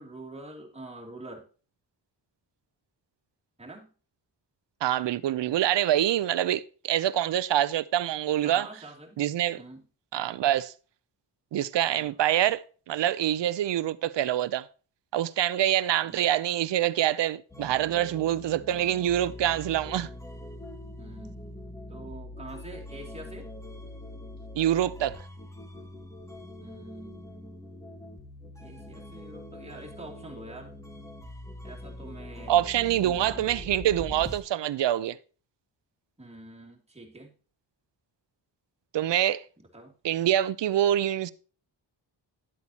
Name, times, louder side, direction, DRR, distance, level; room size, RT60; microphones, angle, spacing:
voice 1, 0.0-1.4 3.6-3.9 8.4-9.2 9.6-9.9 11.9-12.1 16.0-16.2 21.0-21.4 21.9-23.5 26.6-27.6 28.6-30.7 31.6-32.6 33.0-33.5 36.2-37.3 39.6-39.9, right 2 dB, 15° right, 2.6 m, -45 dB
voice 2, 4.8-8.7 9.2-9.6 10.1-10.7 11.5-12.6 12.9-14.7 15.1-20.1 24.6-25.2 32.5-35.2 38.9-39.4 40.0-41.3, right 12 dB, 75° right, 0.6 m, -25 dB
sound 1, 17.5-34.4, left 1 dB, 5° left, 1.3 m, -43 dB
11.5 x 8.3 x 2.9 m
wide cardioid pair, 140°, 43 cm